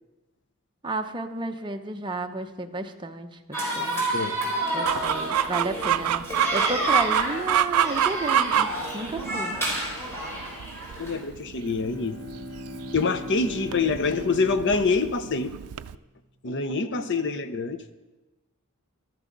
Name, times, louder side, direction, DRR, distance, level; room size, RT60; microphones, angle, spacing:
voice 1, 0.8-4.0 4.7-6.2 6.5-9.5 16.9-17.3, right 2 dB, 20° right, 4 dB, 0.8 m, -32 dB
sound 1, 3.5-11.2, right 1 dB, 10° left, 4.0 m, -30 dB
voice 2, 4.0-4.4 11.0-12.2 12.9-15.5 16.4-17.9, left 4 dB, 55° left, 11 dB, 0.7 m, -26 dB
Chicken rooster, 4.9-16.0, right 10 dB, 90° right, 0.4 m, -27 dB
Bowed string instrument, 11.4-15.7, left 1 dB, 75° left, 1.5 m, -39 dB
14.5 x 12.5 x 3.9 m, 1.1 s
head